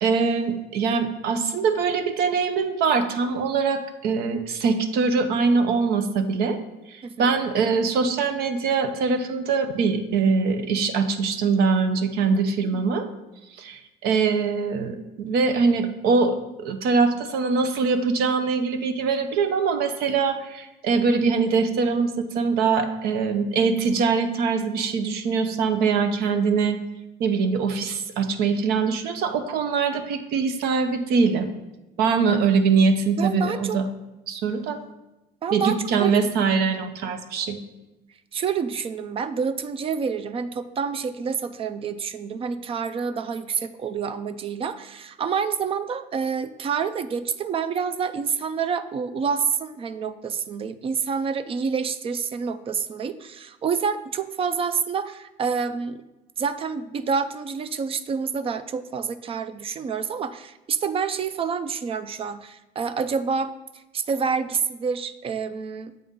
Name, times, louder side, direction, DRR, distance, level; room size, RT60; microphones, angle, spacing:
voice 1, 0.0-6.6 6.9-13.1 13.6-26.8 27.2-31.5 32.0-33.8 34.3-34.8 35.5-37.6, right 5 dB, 70° right, 9 dB, 0.7 m, -23 dB
voice 2, 33.2-33.8 35.4-36.2 38.3-56.0 56.4-65.9, right 6 dB, 35° right, 14 dB, 0.4 m, -28 dB
7.7 x 5.4 x 3.6 m, 1.0 s
cardioid pair, 115°, 17 cm